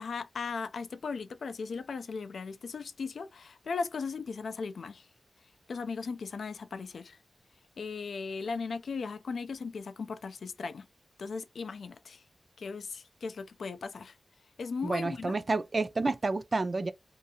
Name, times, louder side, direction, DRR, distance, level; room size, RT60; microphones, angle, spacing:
voice 1, 0.0-5.1 5.7-7.2 7.8-10.9 11.2-12.2 12.6-14.2 14.6-15.4, left 4 dB, 80° left, 0.3 m, -37 dB
voice 2, 14.8-16.9, right 3 dB, 40° right, 0.3 m, -29 dB
2.6 x 2.3 x 2.7 m
wide cardioid pair, 115°, 0 cm